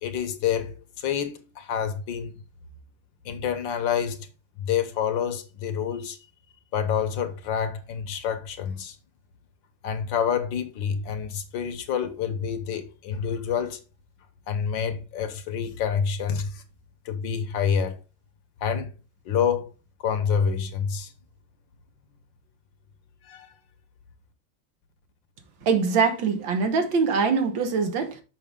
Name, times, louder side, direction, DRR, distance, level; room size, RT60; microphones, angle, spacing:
voice 1, 0.0-2.3 3.2-4.3 4.6-6.2 6.7-9.0 9.8-13.8 14.5-16.6 17.0-18.0 18.6-18.9 19.2-19.7 20.0-21.1 23.2-23.5, left 7 dB, 65° left, 1.6 m, -27 dB
voice 2, 25.6-28.2, right 5 dB, 70° right, 1.9 m, -23 dB
6.6 x 6.0 x 3.6 m
omnidirectional pair, 2.3 m